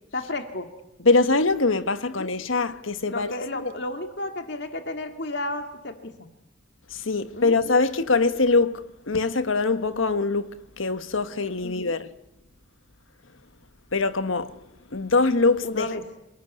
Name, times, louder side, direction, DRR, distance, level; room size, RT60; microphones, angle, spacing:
voice 1, 0.1-0.7 2.1-2.3 3.1-6.3 7.3-7.5 11.6-11.9 15.6-16.1, left 2 dB, 55° left, 2.1 m, -32 dB
voice 2, 1.0-3.3 6.9-12.1 13.9-14.5 14.9-15.9, left 3 dB, 80° left, 1.4 m, -23 dB
27.5 x 20.0 x 9.6 m
head